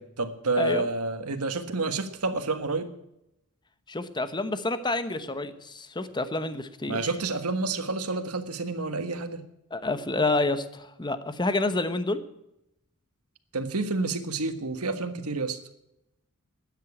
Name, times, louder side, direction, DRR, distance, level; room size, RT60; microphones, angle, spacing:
voice 1, 0.0-2.9 6.9-9.4 13.5-15.6, right 3 dB, 80° right, 8 dB, 1.6 m, -29 dB
voice 2, 3.9-7.0 9.7-12.2, left 2 dB, 20° left, 11 dB, 1.0 m, -28 dB
13.0 x 9.3 x 8.5 m, 0.82 s
head